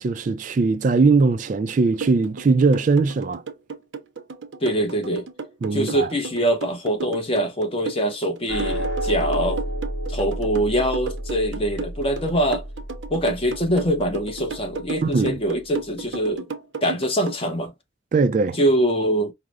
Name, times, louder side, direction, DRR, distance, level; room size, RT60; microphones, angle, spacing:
voice 1, 0.0-3.4 5.6-6.1 15.0-15.4 18.1-18.6, right 4 dB, 40° right, 0.3 m, -20 dB
sound 1, 2.0-17.4, right 5 dB, 75° right, 0.6 m, -34 dB
voice 2, 4.6-5.3 5.7-9.6 10.1-12.6 13.1-16.5 16.8-17.7 18.6-19.3, right 1 dB, 30° left, 0.7 m, -23 dB
sound 2, 8.5-15.0, right 1 dB, 70° left, 0.9 m, -31 dB
4.7 x 2.0 x 2.4 m
head